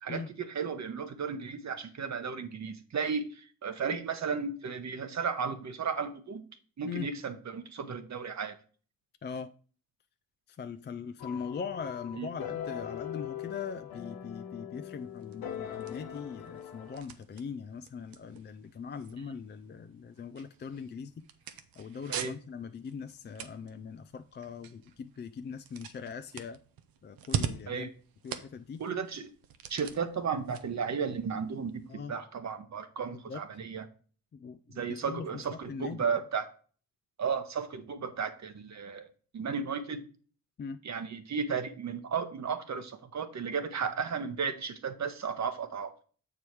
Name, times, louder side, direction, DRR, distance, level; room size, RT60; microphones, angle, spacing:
voice 1, 0.0-6.4 6.8-8.6 12.1-12.3 19.2-19.3 22.1-22.3 27.7-27.9 28.8-29.3 29.7-33.9 34.8-36.5 37.2-39.1 39.3-40.0 40.8-45.9, right 6 dB, 50° right, 8 dB, 1.0 m, -34 dB
voice 2, 10.6-21.2 21.8-26.6 27.0-27.9 28.2-28.8 31.9-32.1 33.3-33.4 34.3-35.3 35.7-36.0 40.6-40.8, left 6 dB, 30° left, 9 dB, 0.4 m, -41 dB
sound 1, 11.2-17.0, left 10 dB, 85° left, 1.0 m, -41 dB
sound 2, 15.0-31.9, right 8 dB, 75° right, 0.8 m, -43 dB
6.9 x 4.8 x 4.6 m, 0.41 s
supercardioid pair, 60°, 35 cm